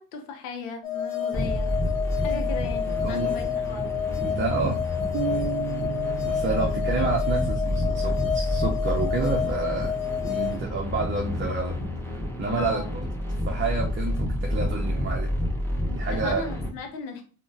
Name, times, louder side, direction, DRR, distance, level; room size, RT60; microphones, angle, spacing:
voice 1, 0.0-1.7 2.2-3.9 6.6-6.9 12.5-12.9 16.1-17.2, left 5 dB, 85° left, 3 dB, 0.7 m, -37 dB
sound 1, 0.8-10.6, left 9 dB, 50° left, 0.9 m, -29 dB
sound 2, 1.3-16.7, left 1 dB, 5° left, 1.2 m, -29 dB
voice 2, 3.0-3.4 4.2-4.8 5.3-5.5 6.1-9.9 10.2-11.8 12.1-13.0 13.5-15.3 15.9-16.5, right 3 dB, 25° right, 1 dB, 0.6 m, -29 dB
sound 3, 5.1-8.9, right 7 dB, 80° right, 0.6 m, -34 dB
3.6 x 2.2 x 2.8 m, 0.38 s
hypercardioid pair, 45°, 48 cm